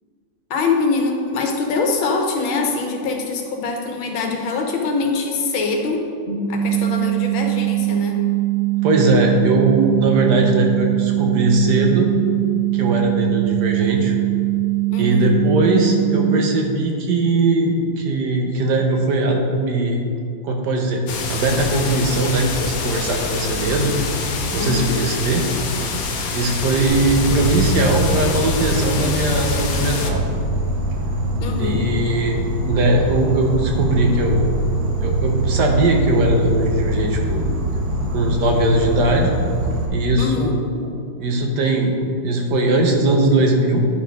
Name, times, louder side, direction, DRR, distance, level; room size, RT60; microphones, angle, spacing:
voice 1, 0.5-6.0 6.5-8.2 14.9-15.4 24.6-25.0 31.4-31.8 40.2-40.6, left 4 dB, 90° left, 2 dB, 1.8 m, -23 dB
sound 1, 6.3-16.3, right 18 dB, 25° left, 1.9 m, -21 dB
voice 2, 8.8-12.1 12.7-14.1 15.0-20.0 20.4-23.9 24.5-25.5 26.3-30.2 31.6-34.5 35.0-37.4 38.1-39.4 39.9-40.9 41.2-41.9 42.2-43.8, right 2 dB, 65° right, 1 dB, 1.4 m, -19 dB
sound 2, 21.1-30.1, left 4 dB, 60° left, 1.1 m, -26 dB
Insect, 26.9-39.9, right 1 dB, 85° right, 1.9 m, -23 dB
10.5 x 4.6 x 5.2 m, 2.4 s
omnidirectional pair, 2.1 m